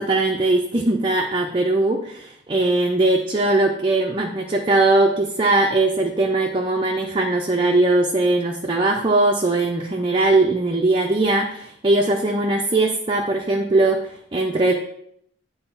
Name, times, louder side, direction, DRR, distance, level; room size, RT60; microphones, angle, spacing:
voice 1, 0.0-14.7, right 2 dB, 25° right, 1 dB, 0.6 m, -20 dB
9.1 x 4.0 x 5.7 m, 0.71 s
head